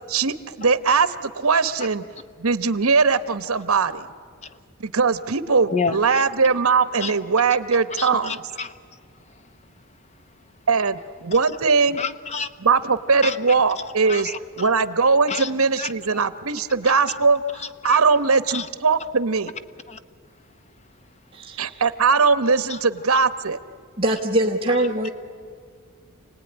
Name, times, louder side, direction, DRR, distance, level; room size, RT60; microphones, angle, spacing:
voice 1, 0.1-2.0 2.4-4.1 4.8-8.3 10.7-12.0 12.6-14.3 14.6-17.4 17.8-19.5 21.6-23.6, right 4 dB, 75° right, 12 dB, 1.0 m, -20 dB
voice 2, 5.7-6.3 7.0-7.2 7.7-9.6 9.8-10.5 11.3-11.5 11.9-12.5 13.2-14.7 15.3-15.9 17.1-17.2 17.5-18.0 18.5-18.7 19.9-20.0 20.8-20.9 21.6-21.7 22.7-22.8 24.8-24.9, left 5 dB, 30° left, 11 dB, 1.0 m, -32 dB
voice 3, 21.3-21.8 24.0-25.1, right 1 dB, 25° right, -2 dB, 1.3 m, -23 dB
29.0 x 18.5 x 9.9 m, 2.1 s
head